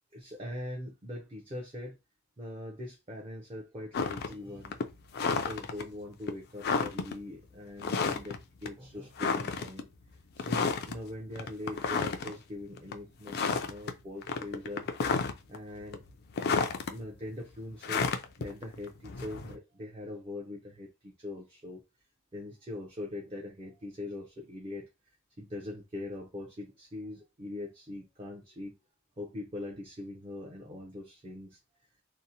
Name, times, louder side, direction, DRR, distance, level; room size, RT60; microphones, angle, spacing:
voice 1, 0.1-2.0 2.4-4.8 5.2-9.9 10.4-13.4 13.6-14.9 15.5-16.0 16.9-18.1 18.4-21.8 22.3-24.9 25.4-28.8 29.2-31.6, left 1 dB, 30° right, 0.5 m, -42 dB
sound 1, 3.9-4.3 4.6-5.8 6.3-6.4 6.6-7.1 7.8-8.4 8.7-8.8 9.2-9.8 10.4-11.0 11.4-12.3 12.8-12.9 13.3-13.9 14.2-15.6 15.9-16.9 17.8-19.6, left 5 dB, 50° left, 0.4 m, -31 dB
2.7 x 2.0 x 2.7 m
head